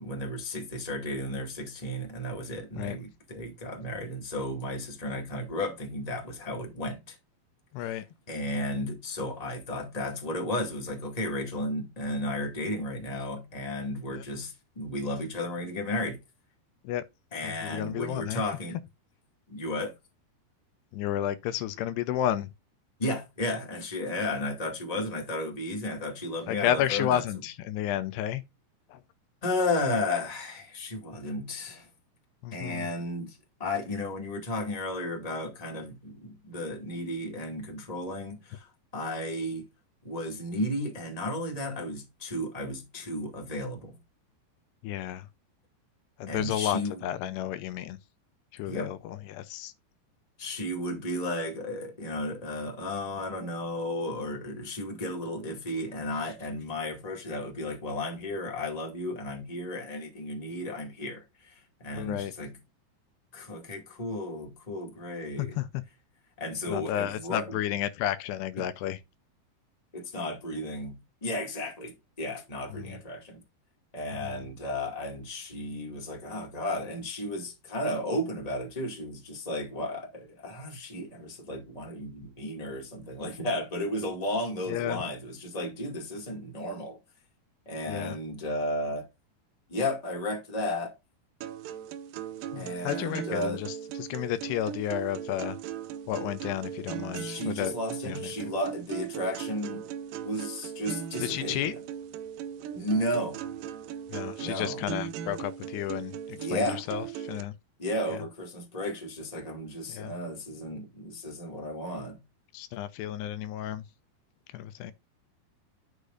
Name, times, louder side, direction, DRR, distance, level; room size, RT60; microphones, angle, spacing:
voice 1, 0.0-7.2 7.8-16.2 17.3-18.8 19.5-19.9 23.0-27.2 29.4-31.9 32.5-39.6 40.0-43.9 46.3-47.0 48.7-48.9 50.4-62.5 63.3-65.5 66.4-67.6 68.6-68.7 69.9-70.9 71.2-73.4 73.9-87.0 87.6-89.0 89.7-90.9 92.5-93.6 97.1-99.8 100.2-101.7 102.7-103.4 104.4-104.8 106.3-106.8 107.8-112.2, left 1 dB, 40° left, 0.5 m, -34 dB
voice 2, 7.7-8.0 14.1-14.2 16.8-17.0 17.4-18.4 20.9-22.5 26.5-28.4 28.9-29.0 32.4-32.9 44.8-45.3 46.2-48.0 48.5-49.7 61.9-62.3 65.4-65.7 66.7-69.0 72.7-73.0 74.2-74.4 84.7-85.0 87.9-88.2 92.5-95.6 96.1-97.7 98.1-98.2 101.2-101.7 104.1-107.5 108.1-108.2 109.9-110.1 112.5-113.8 114.5-114.9, left 11 dB, 80° left, 2.6 m, -32 dB
sound 1, 91.4-107.4, right 9 dB, 80° right, 2.0 m, -38 dB
12.0 x 6.6 x 2.5 m
omnidirectional pair, 5.1 m